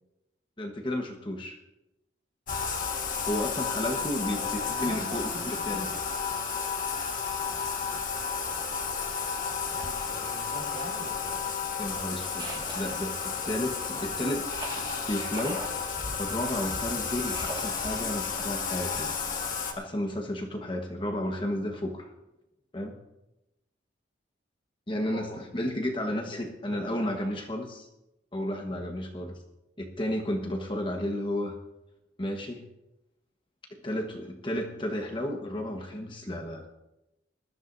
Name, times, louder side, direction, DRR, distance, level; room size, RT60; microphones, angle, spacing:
voice 1, 0.6-1.6 3.3-5.9 11.8-13.1 13.4-14.4 15.1-15.6 16.2-19.1 19.8-22.1 22.7-22.9 24.9-27.9 28.3-29.4 29.8-31.6 32.2-32.6 33.7-36.7, left 1 dB, 25° left, 2 dB, 1.3 m, -32 dB
Bathtub (filling or washing), 2.5-19.7, left 5 dB, 45° left, 1.6 m, -32 dB
voice 2, 4.3-6.1 9.7-11.8 25.1-25.4 26.0-26.3 26.7-27.3, right 1 dB, 55° right, -1 dB, 5.4 m, -44 dB
Turning pages in a book, 12.4-13.3 14.5-15.8 17.0-18.1, right 2 dB, 20° right, 1.9 m, -42 dB
20.0 x 13.5 x 2.7 m, 0.95 s
head